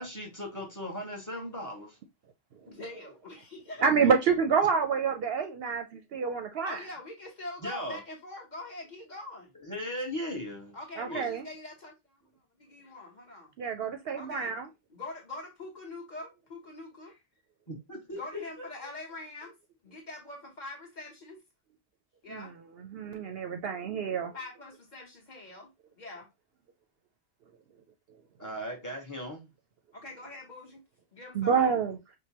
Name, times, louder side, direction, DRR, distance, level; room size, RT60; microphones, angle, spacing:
voice 1, 0.0-2.0 7.6-8.0 9.5-10.8 11.0-11.3 17.7-18.7 28.4-29.5, equal, 15° left, 0.9 m, -38 dB
voice 2, 2.7-3.9 6.6-9.5 10.7-12.2 12.6-13.5 14.1-14.5 14.9-17.2 18.1-19.5 19.8-21.4 22.2-22.5 24.3-25.7 26.0-26.3 29.9-30.8 31.1-31.8, left 2 dB, 40° left, 1.2 m, -43 dB
voice 3, 3.8-6.8 11.0-11.5 13.6-14.7 22.3-22.5 22.8-24.3 31.4-32.0, right 6 dB, 60° right, 0.7 m, -27 dB
4.8 x 2.2 x 2.8 m
omnidirectional pair, 1.3 m